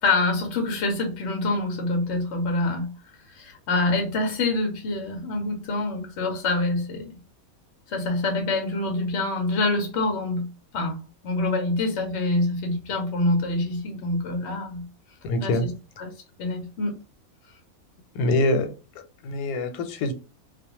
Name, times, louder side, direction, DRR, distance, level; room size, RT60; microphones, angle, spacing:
voice 1, 0.0-2.9 3.3-7.2 7.9-10.5 10.7-11.0 11.2-14.8 15.4-15.6 16.0-16.1 16.4-17.0, left 2 dB, 65° left, 0.7 m, -26 dB
voice 2, 15.2-15.6 18.1-18.7 19.2-20.1, left 2 dB, 85° left, 1.1 m, -24 dB
2.3 x 2.1 x 2.8 m
omnidirectional pair, 1.5 m